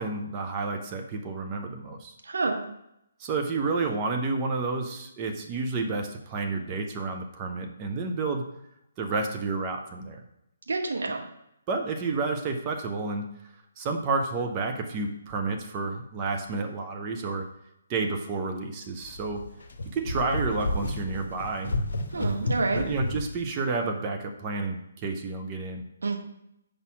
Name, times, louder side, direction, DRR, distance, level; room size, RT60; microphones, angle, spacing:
voice 1, 0.0-2.1 3.2-8.4 9.0-10.2 11.7-13.2 13.8-17.4 17.9-19.4 19.9-21.7 22.1-22.5 22.7-25.8, right 3 dB, 25° right, 3 dB, 0.7 m, -30 dB
voice 2, 2.2-2.6 10.7-11.2 22.1-22.9 26.0-26.2, right 3 dB, 65° right, 2 dB, 1.0 m, -28 dB
sound 1, 19.0-23.4, left 1 dB, 60° left, 0.8 m, -32 dB
5.0 x 4.2 x 5.9 m, 0.81 s
figure-of-eight pair, 135°, 0 cm